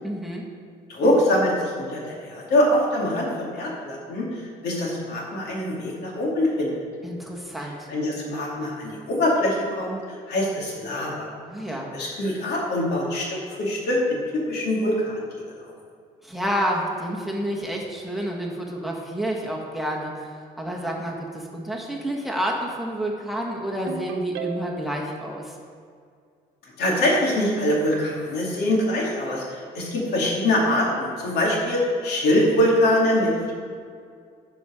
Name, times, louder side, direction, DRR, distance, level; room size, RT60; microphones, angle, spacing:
voice 1, 0.0-0.4 7.0-7.9 11.5-11.9 16.2-25.6, equal, ahead, -1 dB, 1.3 m, -29 dB
voice 2, 0.9-6.8 7.9-11.3 11.9-15.2 26.6-33.5, left 1 dB, 75° left, -3 dB, 2.4 m, -23 dB
Ringtone, 23.9-25.0, right 7 dB, 90° right, 0.6 m, -34 dB
9.9 x 4.9 x 6.2 m, 2.2 s
cardioid pair, 110°, 17 cm